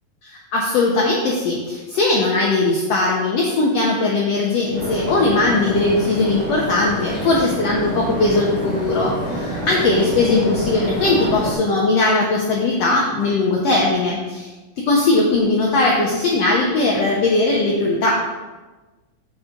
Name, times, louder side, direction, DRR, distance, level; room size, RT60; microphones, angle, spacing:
voice 1, 0.2-14.5 14.9-18.2, left 2 dB, 85° left, -2 dB, 1.4 m, -19 dB
sound 1, 4.7-11.5, equal, 25° right, 2.2 m, -27 dB
7.7 x 6.1 x 3.7 m, 1.2 s
omnidirectional pair, 4.1 m